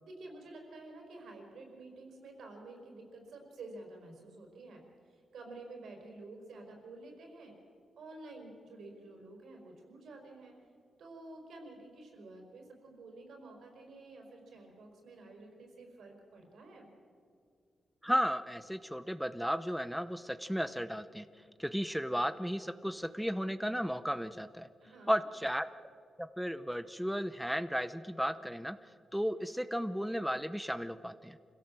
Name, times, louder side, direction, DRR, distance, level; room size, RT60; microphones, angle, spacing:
voice 1, 0.0-4.8 5.1-7.5 8.0-10.6 11.0-16.9 24.8-25.2, right 2 dB, 80° right, 2 dB, 5.0 m, -50 dB
voice 2, 18.0-21.3 21.6-24.7 25.1-25.7 26.2-28.8 29.1-31.4, equal, ahead, 12 dB, 0.6 m, -34 dB
26.0 x 16.5 x 7.5 m, 2.3 s
cardioid pair, 105°, 0 cm